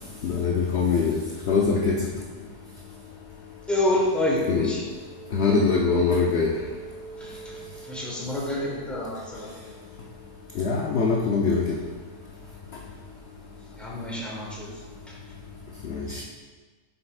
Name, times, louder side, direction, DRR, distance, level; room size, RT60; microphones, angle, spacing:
voice 1, 0.2-1.2 1.5-2.0 4.5-4.7 5.3-6.5 10.6-11.6 15.9-16.2, left 4 dB, 65° left, -1 dB, 0.7 m, -22 dB
voice 2, 3.7-4.8 7.2-9.7 13.8-15.2, left 1 dB, ahead, -5 dB, 1.2 m, -28 dB
7.7 x 5.5 x 2.4 m, 1.4 s
omnidirectional pair, 1.6 m